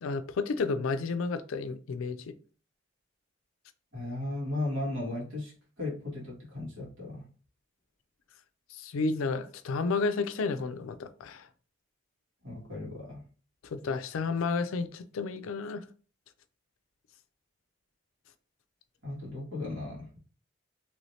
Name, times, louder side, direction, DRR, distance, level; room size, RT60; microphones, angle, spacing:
voice 1, 0.0-2.3 8.7-11.5 13.6-15.8, left 4 dB, 90° left, 0.4 m, -31 dB
voice 2, 3.9-5.5 5.8-7.3 12.4-13.2 19.0-20.2, left 2 dB, 70° right, 1.7 m, -36 dB
3.0 x 2.7 x 3.1 m
head